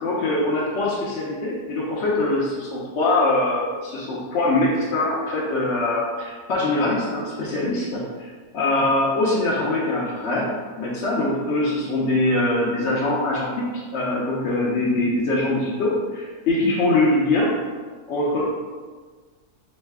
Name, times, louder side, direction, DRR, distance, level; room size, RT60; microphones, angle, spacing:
voice 1, 0.0-10.5 10.8-17.5 18.1-18.5, left 2 dB, 60° left, -6 dB, 0.8 m, -23 dB
3.6 x 3.2 x 3.4 m, 1.5 s
omnidirectional pair, 1.6 m